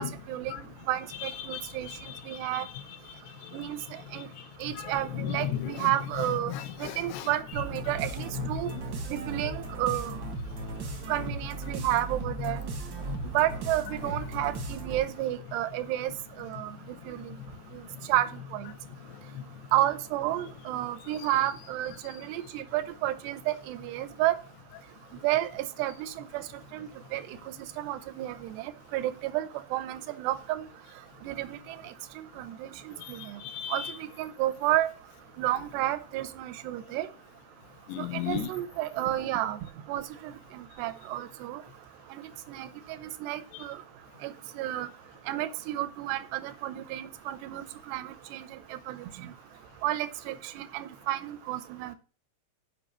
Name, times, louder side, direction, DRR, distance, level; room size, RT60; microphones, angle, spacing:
voice 1, 0.0-2.7 3.5-3.8 4.1-4.3 4.6-6.5 6.8-8.7 9.1-10.2 11.1-12.6 13.2-16.1 16.4-16.7 17.1-17.3 17.7-17.8 18.1-18.7 19.7-24.3 25.2-26.4 26.7-27.2 27.8-30.6 31.2-31.6 32.4-33.2 33.7-34.9 35.4-37.1 38.0-39.6 39.9-41.6 42.1-42.7 43.0-43.8 44.2-44.9 45.3-48.6 48.9-49.3 49.8-52.0, right 14 dB, 85° right, 2.9 m, -31 dB
voice 2, 1.1-9.6 9.9-10.0 10.9-11.4 11.7-12.6 13.1-13.2 14.0-14.2 14.6-14.8 17.2-17.5 17.9-18.8 19.1-19.9 21.3-21.5 33.0-34.0 37.9-38.5 43.5-43.7, left 10 dB, 80° left, 3.0 m, -38 dB
sound 1, 7.5-15.2, right 3 dB, 60° right, 1.2 m, -37 dB
7.5 x 5.5 x 7.3 m
omnidirectional pair, 4.7 m